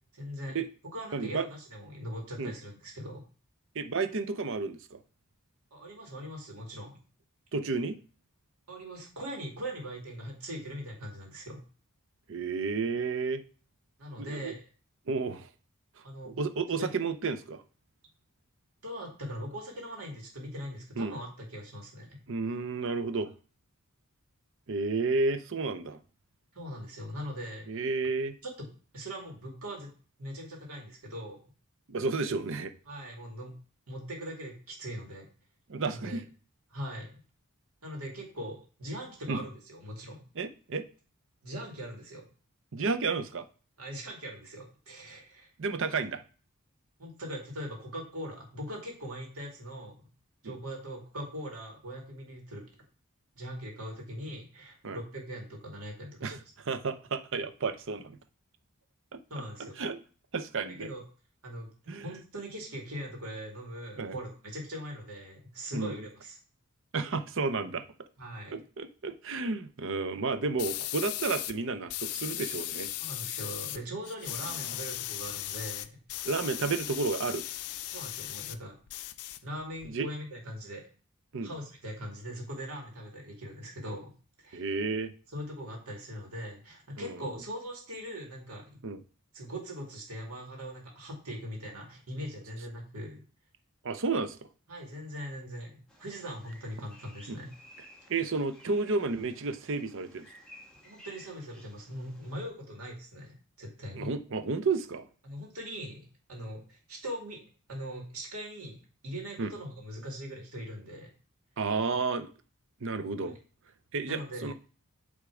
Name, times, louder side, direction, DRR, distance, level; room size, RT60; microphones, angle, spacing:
voice 1, 0.2-0.6 0.9-3.2 5.7-7.0 8.7-11.6 14.0-14.6 16.0-16.4 16.8-16.9 18.8-22.2 26.5-27.9 28.4-28.5 28.9-29.9 30.2-31.4 32.9-33.5 33.9-35.3 35.8-36.2 36.7-37.2 37.8-40.2 41.4-42.2 43.8-45.5 47.0-50.0 50.4-52.7 53.4-56.4 59.3-59.8 60.8-61.0 61.4-66.4 68.2-68.6 73.0-75.9 77.9-78.8 79.4-80.8 81.4-84.1 84.4-84.7 85.3-88.8 89.3-93.2 94.7-97.5 100.8-104.1 105.2-107.4 107.7-111.1 113.2-113.3 114.0-114.5, equal, 75° right, 0 dB, 2.4 m, -41 dB
voice 2, 1.1-1.5 2.4-2.5 3.7-5.0 7.5-8.0 12.3-13.4 14.2-14.5 15.1-15.5 16.3-17.6 21.0-21.1 22.3-23.3 24.7-26.0 27.7-28.3 31.9-32.7 35.7-36.2 39.3-39.4 40.4-40.9 42.7-43.4 45.6-46.2 50.4-50.6 54.8-55.0 56.2-56.4 56.7-58.2 59.1-59.2 59.8-60.0 60.3-60.9 61.9-62.0 64.0-64.2 65.7-66.0 66.9-67.8 68.5-72.9 74.6-74.8 76.2-77.4 79.8-80.1 81.3-81.5 84.5-85.1 87.0-87.2 88.8-89.0 93.8-94.4 97.3-97.4 98.1-100.3 104.0-105.1 109.4-109.5 111.6-112.3 112.8-113.4 113.9-114.5, right 4 dB, 60° right, 10 dB, 0.6 m, -31 dB
sound 1, 70.6-71.5 71.9-73.8 74.0-78.6 78.9-79.9, left 14 dB, 80° left, 0.4 m, -37 dB
Bird vocalization bird call bird song, 95.9-102.5, left 1 dB, 5° left, 1.5 m, -56 dB
8.3 x 3.6 x 4.9 m, 0.38 s
head